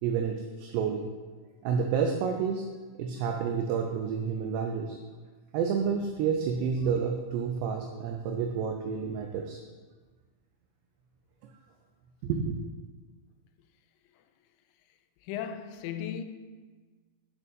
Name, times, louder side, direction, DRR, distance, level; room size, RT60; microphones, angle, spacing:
voice 1, 0.0-1.1 1.6-2.7 2.9-5.0 5.5-9.6 12.2-12.6, right 6 dB, 80° right, 2.6 m, -29 dB
voice 2, 15.2-16.2, left 9 dB, 90° left, 2.9 m, -35 dB
8.3 x 6.3 x 5.3 m
omnidirectional pair, 5.2 m